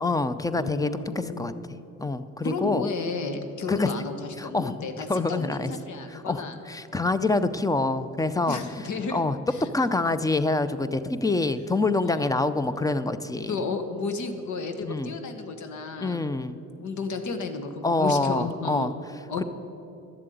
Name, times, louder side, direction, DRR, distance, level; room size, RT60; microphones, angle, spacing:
voice 1, 0.0-1.5 2.0-2.9 3.7-3.9 4.4-5.7 6.1-8.6 9.1-9.4 9.7-13.6 14.8-15.1 16.0-16.6 17.8-18.9 19.4-19.5, left 3 dB, 10° left, 12 dB, 0.6 m, -26 dB
voice 2, 0.5-1.6 2.4-6.5 8.5-9.2 9.5-9.7 12.0-12.4 13.5-16.2 16.8-18.9 19.3-19.4, left 4 dB, 70° left, 7 dB, 1.4 m, -33 dB
12.0 x 7.5 x 9.3 m, 2.8 s
cardioid pair, 90°, 30 cm